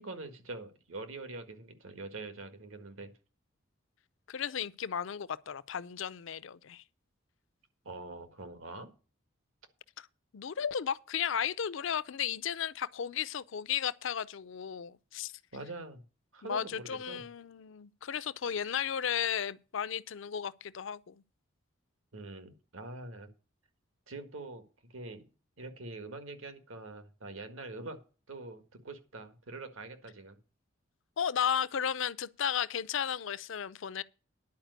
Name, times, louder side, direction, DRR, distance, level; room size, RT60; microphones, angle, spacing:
voice 1, 0.0-3.1 7.8-8.9 15.5-16.0 16.3-17.2 22.1-23.3 24.1-24.6 24.9-25.3 25.6-28.0 28.3-30.4, right 2 dB, 85° right, 1.7 m, -44 dB
voice 2, 4.3-6.8 10.0-10.1 10.3-15.3 16.4-21.2 31.2-34.0, left 8 dB, 70° left, 0.5 m, -34 dB
10.5 x 5.0 x 8.0 m
head